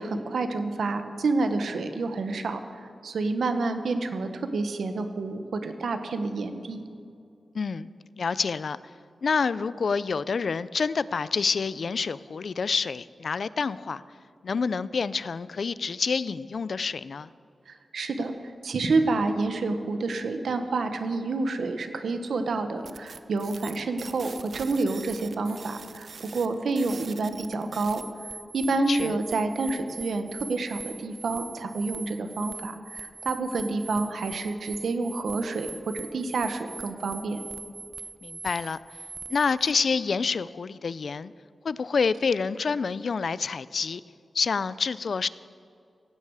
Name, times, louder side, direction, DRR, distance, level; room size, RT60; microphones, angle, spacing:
voice 1, 0.0-2.6 3.0-6.8 17.7-18.3 18.6-28.0 28.5-37.4, right 3 dB, 80° right, 7 dB, 1.3 m, -28 dB
voice 2, 7.5-7.9 8.2-8.8 9.2-14.0 14.4-17.3 28.9-29.2 38.2-38.8 39.3-41.3 41.6-44.0 44.3-45.3, left 5 dB, 60° left, 17 dB, 0.4 m, -27 dB
sound 1, 22.8-39.7, right 5 dB, 60° right, 0.7 m, -42 dB
16.5 x 16.0 x 4.9 m, 2.4 s
wide cardioid pair, 125°, 0 cm